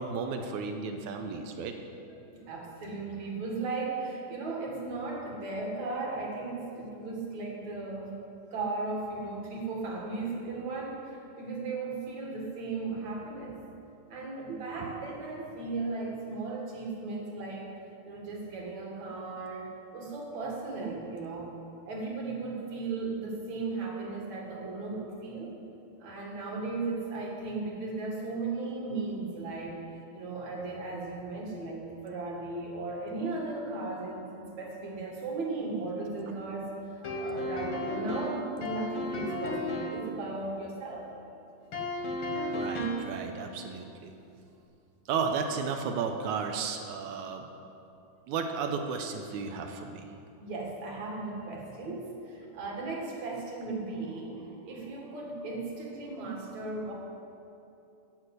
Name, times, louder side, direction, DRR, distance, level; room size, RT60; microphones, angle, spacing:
voice 1, 0.0-1.7 14.5-15.0 42.5-44.1 45.1-47.5 48.3-50.1, right 5 dB, 75° right, 5 dB, 1.9 m, -34 dB
voice 2, 2.3-8.2 8.5-13.6 14.1-17.8 18.0-21.5 21.8-25.6 26.0-29.8 30.1-41.0 50.4-56.9, right 3 dB, 55° right, -2 dB, 3.0 m, -36 dB
sound 1, 37.0-40.0 41.7-43.2, left 1 dB, 50° left, 1.5 m, -33 dB
15.0 x 6.5 x 8.2 m, 2.7 s
omnidirectional pair, 4.3 m